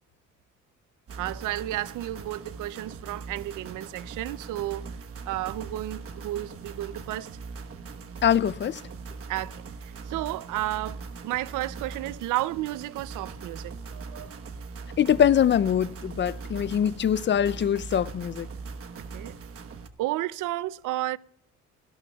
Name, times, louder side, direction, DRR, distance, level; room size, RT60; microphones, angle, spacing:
sound 1, 1.1-19.9, right 4 dB, 50° right, 1.2 m, -40 dB
voice 1, 1.2-4.9 5.3-7.3 9.3-9.6 10.1-14.3 19.1-19.3 20.0-21.2, right 15 dB, 85° right, 0.5 m, -32 dB
voice 2, 8.2-8.8 15.0-18.5, left 9 dB, 40° left, 0.4 m, -23 dB
22.5 x 12.0 x 2.3 m
cardioid pair, 90°, 30 cm